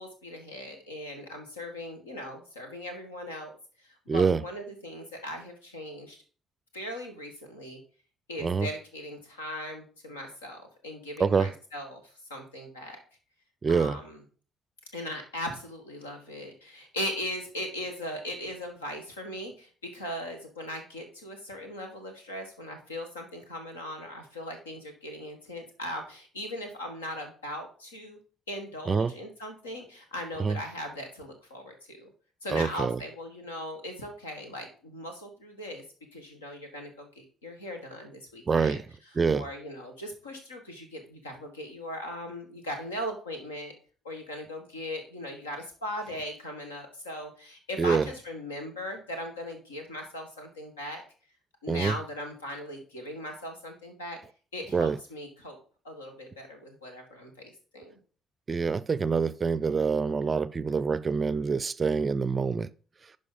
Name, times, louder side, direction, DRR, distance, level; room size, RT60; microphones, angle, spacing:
voice 1, 0.0-3.5 3.8-6.2 6.7-7.8 8.3-12.0 12.3-13.0 13.7-14.2 14.9-28.2 28.5-32.1 32.4-35.8 36.1-38.8 39.3-43.7 44.0-51.0 51.6-54.2 54.5-55.6 55.8-58.0, left 1 dB, 80° left, 1.5 m, -39 dB
voice 2, 4.1-4.4 8.4-8.7 11.2-11.5 13.6-14.0 28.9-29.1 30.4-30.6 32.5-33.0 38.5-38.8 39.2-39.5 47.8-48.1 51.7-52.0 54.7-55.0 58.5-62.7, right 5 dB, 30° right, 0.4 m, -26 dB
11.0 x 5.2 x 3.8 m
figure-of-eight pair, 45°, 0 cm